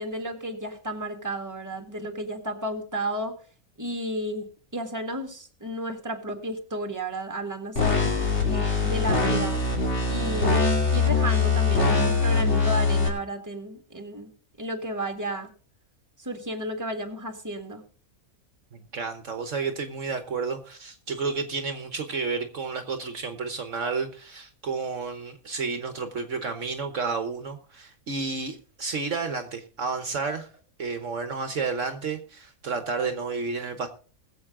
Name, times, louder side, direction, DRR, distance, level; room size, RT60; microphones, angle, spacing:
voice 1, 0.0-3.4 3.8-4.5 4.7-8.1 8.5-9.6 10.1-10.7 10.9-14.3 14.6-15.5 16.2-17.8, right 1 dB, 15° right, 1.8 m, -33 dB
sound 1, 7.8-13.1, left 4 dB, 50° left, 3.1 m, -23 dB
voice 2, 18.7-30.5 30.8-33.9, right 4 dB, 60° right, 1.4 m, -31 dB
21.0 x 7.7 x 3.7 m
omnidirectional pair, 1.5 m